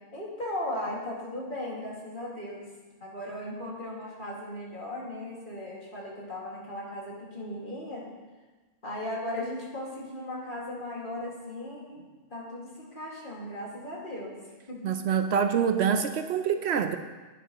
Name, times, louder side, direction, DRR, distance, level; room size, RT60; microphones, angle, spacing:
voice 1, 0.1-2.7 3.0-8.0 8.8-14.4 14.7-14.9, left 1 dB, 45° left, -4 dB, 2.4 m, -37 dB
voice 2, 14.8-17.0, right 7 dB, 70° right, 8 dB, 0.8 m, -25 dB
10.5 x 9.8 x 3.0 m, 1.3 s
omnidirectional pair, 1.2 m